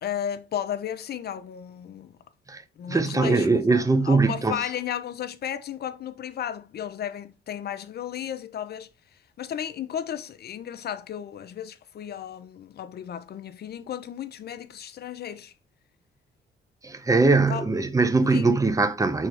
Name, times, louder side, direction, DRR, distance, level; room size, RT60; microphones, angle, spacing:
voice 1, 0.0-2.2 2.8-15.5 17.5-17.7 18.3-18.5, left 9 dB, 55° left, 0.6 m, -34 dB
voice 2, 2.9-4.6 16.8-19.3, right 3 dB, 15° right, 0.7 m, -21 dB
4.5 x 3.5 x 3.3 m
cardioid pair, 90°, 20 cm